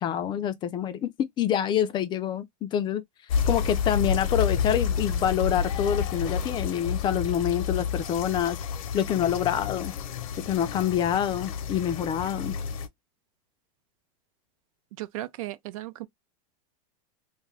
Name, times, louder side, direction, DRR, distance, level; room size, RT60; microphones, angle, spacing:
voice 1, 0.0-3.0 3.5-8.6 8.9-9.9 10.4-12.6, left 9 dB, 25° left, 0.4 m, -26 dB
sound 1, 3.3-12.9, left 7 dB, 70° left, 0.7 m, -30 dB
voice 2, 15.0-16.1, right 15 dB, 70° right, 0.5 m, -36 dB
2.6 x 2.3 x 3.2 m
supercardioid pair, 135°, 18 cm